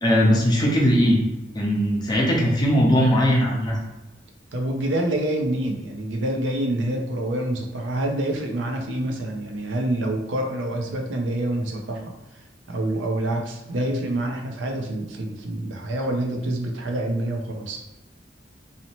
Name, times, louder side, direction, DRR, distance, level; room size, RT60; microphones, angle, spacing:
voice 1, 0.0-1.2 1.5-3.8, equal, 25° left, -3 dB, 0.6 m, -19 dB
voice 2, 4.5-17.8, right 1 dB, 80° right, 3 dB, 0.5 m, -27 dB
2.8 x 2.0 x 2.9 m, 1.0 s
head